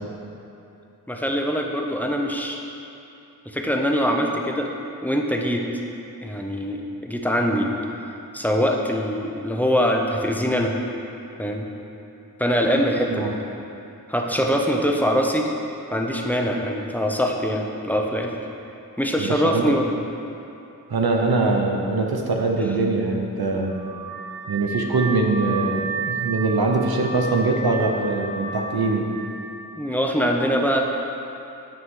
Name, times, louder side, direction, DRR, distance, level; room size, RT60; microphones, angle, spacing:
voice 1, 1.1-2.6 3.5-4.7 5.0-5.6 6.2-7.7 8.3-10.7 11.4-11.7 12.4-13.3 14.1-15.5 15.9-18.3 19.0-19.9 29.8-30.8, equal, 5° left, 1 dB, 0.9 m, -23 dB
voice 2, 19.2-19.7 20.9-23.8 24.5-29.0, right 3 dB, 90° right, 1 dB, 0.8 m, -22 dB
Car / Alarm, 23.7-29.1, right 4 dB, 75° right, 1.2 m, -32 dB
9.2 x 5.5 x 4.8 m, 2.8 s
wide cardioid pair, 50°, 36 cm